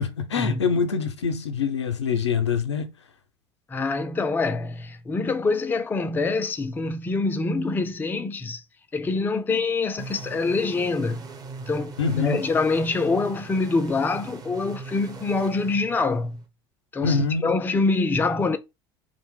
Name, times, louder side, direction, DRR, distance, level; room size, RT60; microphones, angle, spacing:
voice 1, 0.0-2.9 12.0-12.5 17.0-17.5, left 5 dB, 80° left, 0.5 m, -25 dB
voice 2, 3.7-8.6 8.9-11.2 11.7-16.4 16.9-18.6, left 3 dB, 15° left, 0.4 m, -25 dB
sound 1, 10.0-16.5, right 4 dB, 25° right, 0.6 m, -41 dB
2.5 x 2.1 x 3.4 m
figure-of-eight pair, 65°, 14 cm